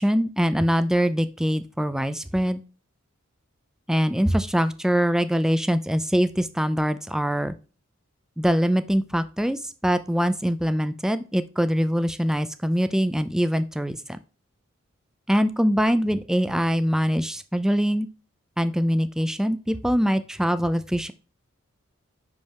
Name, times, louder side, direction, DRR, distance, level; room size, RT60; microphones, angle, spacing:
voice 1, 0.0-2.6 3.9-7.5 8.4-14.0 15.3-18.1 18.6-21.1, equal, 5° right, 11 dB, 0.4 m, -23 dB
5.9 x 5.3 x 3.4 m, 0.35 s
head